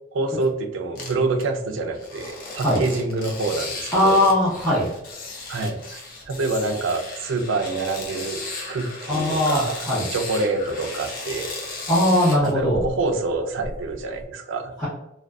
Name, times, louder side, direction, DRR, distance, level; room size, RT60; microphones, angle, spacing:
voice 1, 0.1-4.2 5.5-8.4 8.7-11.5 12.4-14.7, right 3 dB, 85° right, 6 dB, 0.4 m, -26 dB
sound 1, 0.9-1.4 1.9-13.1 13.6-14.2, left 3 dB, 45° left, 0.5 m, -35 dB
voice 2, 3.9-4.9 9.1-10.1 11.9-12.8 14.8-14.9, left 1 dB, ahead, -11 dB, 0.7 m, -20 dB
2.4 x 2.3 x 2.3 m, 0.84 s
head